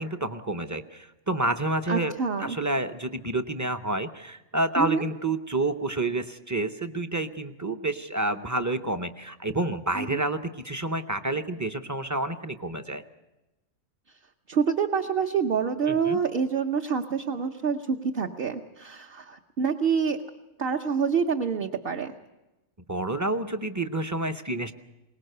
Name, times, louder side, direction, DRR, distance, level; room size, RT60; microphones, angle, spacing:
voice 1, 0.0-2.1 2.4-13.0 15.9-16.2 22.9-24.7, right 2 dB, 20° right, 8 dB, 0.5 m, -29 dB
voice 2, 1.9-2.6 4.8-5.1 10.0-10.2 14.5-20.2 20.6-22.1, right 6 dB, 55° right, 3 dB, 1.0 m, -27 dB
22.5 x 19.0 x 6.7 m, 1.0 s
omnidirectional pair, 1.3 m